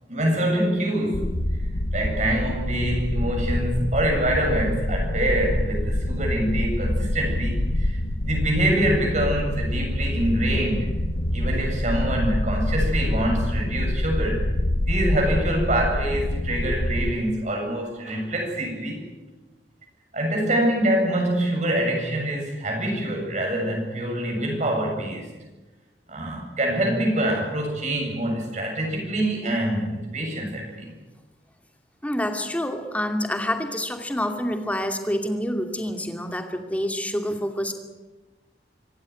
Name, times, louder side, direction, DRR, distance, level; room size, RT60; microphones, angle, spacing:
voice 1, 0.1-1.4 1.9-11.0 11.3-14.5 14.8-19.0 20.1-25.3 26.1-31.0, right 1 dB, 45° right, 1 dB, 7.3 m, -25 dB
sound 1, 1.1-17.1, left 1 dB, 65° left, 1.2 m, -26 dB
voice 2, 32.0-37.7, equal, 10° left, 5 dB, 2.5 m, -27 dB
26.0 x 15.5 x 9.6 m, 1.2 s
head